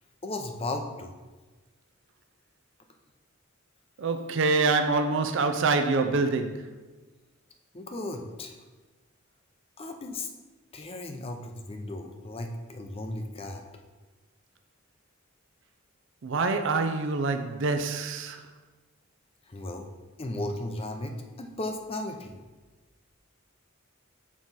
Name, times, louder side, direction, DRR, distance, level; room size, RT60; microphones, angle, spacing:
voice 1, 0.2-1.1 7.7-8.6 9.8-10.3 10.7-13.6 19.5-19.9 20.2-22.4, left 2 dB, 30° left, 0.6 m, -35 dB
voice 2, 4.0-6.7 16.2-18.4, right 3 dB, 60° right, 0.5 m, -26 dB
6.1 x 4.6 x 4.0 m
head